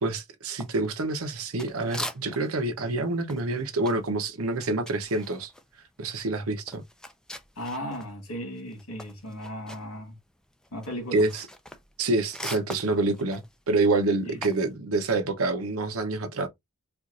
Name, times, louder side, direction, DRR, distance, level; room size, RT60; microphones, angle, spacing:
voice 1, 0.0-5.5 6.0-6.8 11.1-11.4 12.0-16.5, right 2 dB, 75° right, 0.9 m, -27 dB
sound 1, 0.6-2.6 2.9-8.1 8.5-14.7, left 1 dB, 5° left, 0.4 m, -42 dB
voice 2, 7.6-10.1 10.7-11.3 14.2-14.4, equal, 90° left, 2.2 m, -36 dB
4.5 x 2.5 x 2.5 m
head